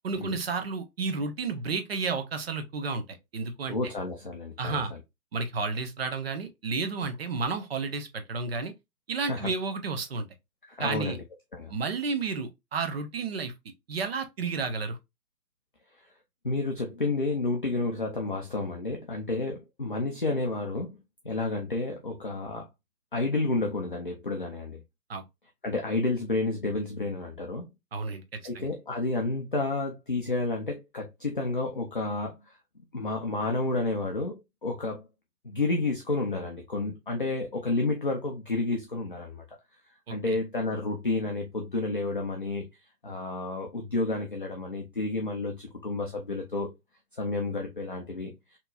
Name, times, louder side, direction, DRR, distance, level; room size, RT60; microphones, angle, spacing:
voice 1, 0.0-3.9 4.6-4.9 5.3-8.7 9.1-10.3 10.8-11.2 11.7-13.5 13.9-15.0 25.1-25.2 27.9-28.7 40.1-40.4, right 4 dB, 40° right, 0.6 m, -32 dB
voice 2, 3.7-4.8 9.3-9.5 10.7-11.2 11.5-11.7 16.4-20.9 21.2-22.7 23.1-24.8 25.6-27.7 28.4-32.4 32.9-35.1 35.4-39.4 40.1-42.7 43.0-46.7 47.2-48.3, left 2 dB, 35° left, 0.4 m, -30 dB
4.1 x 2.9 x 2.2 m
figure-of-eight pair, 140°, 49 cm